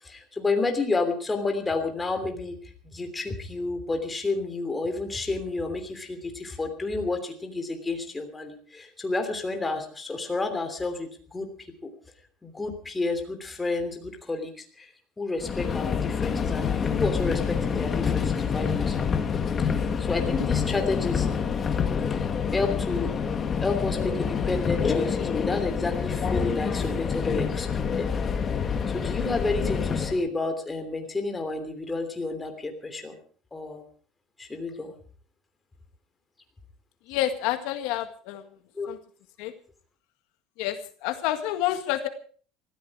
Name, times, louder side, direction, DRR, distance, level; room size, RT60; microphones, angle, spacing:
voice 1, 0.0-2.6 2.8-11.5 11.8-11.9 12.4-14.9 15.2-19.1 19.6-21.3 22.2-23.1 23.6-28.1 28.3-28.4 28.9-33.1 33.5-33.8 34.4-34.9 38.7-38.9, left 3 dB, 15° left, 5 dB, 3.1 m, -30 dB
Subway metro underground, 15.4-30.2, left 6 dB, 30° left, 1.6 m, -27 dB
voice 2, 37.1-38.5 38.9-39.0 39.4-39.5 40.6-42.1, left 13 dB, 80° left, 7 dB, 1.8 m, -28 dB
19.0 x 14.5 x 4.8 m, 0.43 s
cardioid pair, 140°, 0 cm